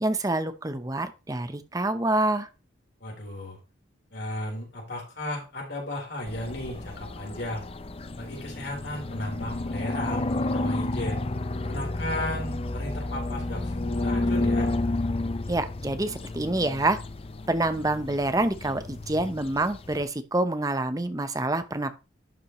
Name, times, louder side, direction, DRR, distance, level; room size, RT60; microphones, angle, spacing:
voice 1, 0.0-2.5 15.5-17.0 17.5-22.0, right 2 dB, 20° right, 10 dB, 0.7 m, -27 dB
voice 2, 3.0-3.6 4.1-7.7 8.2-11.2 11.6-14.7, left 1 dB, 60° left, -1 dB, 3.9 m, -35 dB
sound 1, 6.3-20.0, left 2 dB, 30° left, 0.5 m, -31 dB
11.5 x 5.7 x 3.0 m, 0.30 s
head